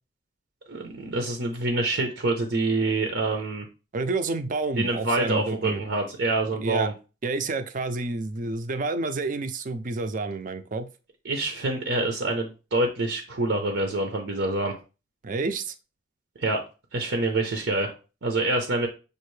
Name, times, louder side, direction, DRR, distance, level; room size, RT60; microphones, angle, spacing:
voice 1, 0.7-3.6 4.8-6.9 11.2-14.8 16.4-16.6 16.9-17.9 18.2-18.9, right 2 dB, 85° right, 3 dB, 0.8 m, -26 dB
voice 2, 3.9-5.8 6.6-6.9 7.2-10.9 15.2-15.7, right 3 dB, 45° right, 9 dB, 0.4 m, -29 dB
6.5 x 2.5 x 3.2 m, 0.32 s
head